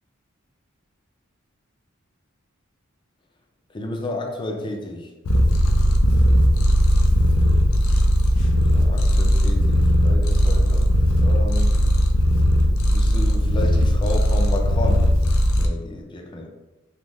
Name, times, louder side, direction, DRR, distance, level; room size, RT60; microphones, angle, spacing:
voice 1, 3.7-5.1 8.6-10.9 11.2-11.8 12.9-15.1 15.6-16.5, left 1 dB, 25° left, 2 dB, 0.4 m, -31 dB
Purr, 5.2-15.7, equal, 85° left, 0.4 m, -18 dB
3.5 x 2.0 x 3.0 m, 1.1 s
head